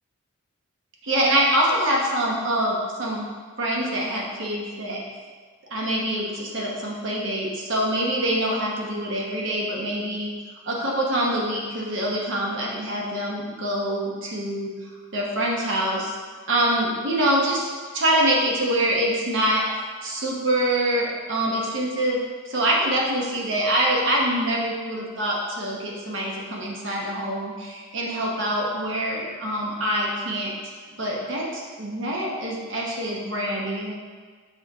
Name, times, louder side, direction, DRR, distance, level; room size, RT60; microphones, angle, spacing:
voice 1, 1.0-3.2 3.6-5.0 5.7-10.3 10.6-14.7 15.1-16.1 16.5-17.7 17.9-19.6 20.0-22.2 22.4-30.5 31.0-34.0, right 1 dB, 55° right, -3 dB, 1.0 m, -25 dB
6.7 x 4.2 x 4.8 m, 1.6 s
head